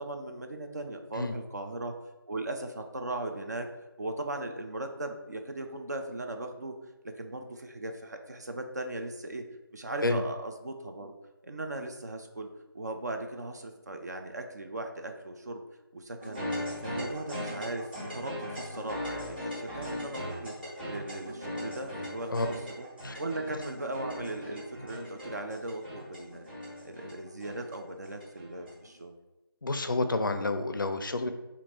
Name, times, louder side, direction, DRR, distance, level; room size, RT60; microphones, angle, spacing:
voice 1, 0.0-1.9 2.3-3.7 4.0-6.7 7.0-9.5 9.7-11.1 11.4-12.5 12.7-15.6 15.9-16.4 16.8-20.6 20.9-22.9 23.2-26.5 26.8-29.1, right 2 dB, 45° right, 4 dB, 0.4 m, -38 dB
sound 1, 16.2-28.9, left 1 dB, 25° right, 1.5 m, -39 dB
voice 2, 29.6-31.3, left 2 dB, 60° left, 8 dB, 0.4 m, -29 dB
2.9 x 2.6 x 4.3 m, 1.0 s
figure-of-eight pair, 165°, 13 cm